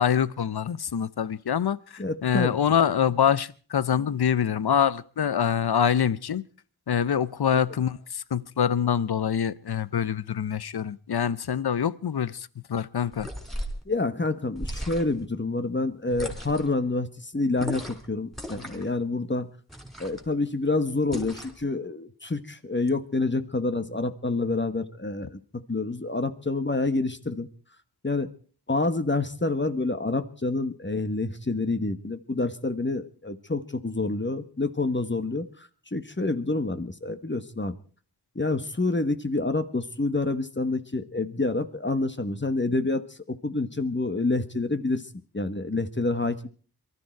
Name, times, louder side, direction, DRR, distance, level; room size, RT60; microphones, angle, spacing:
voice 1, 0.0-6.4 6.9-13.3, left 8 dB, 75° left, 0.8 m, -25 dB
voice 2, 2.0-2.6 13.9-19.5 20.0-27.5 28.0-28.3 28.7-37.7 38.3-45.0 45.3-46.5, left 2 dB, 30° left, 1.4 m, -28 dB
sound 1, 13.1-13.8 14.6-15.2 16.1-16.7 17.6-18.1 18.3-18.9 19.7-20.3 21.1-21.6, equal, ahead, 4.1 m, -36 dB
23.5 x 13.0 x 4.6 m
wide cardioid pair, 55°, 38 cm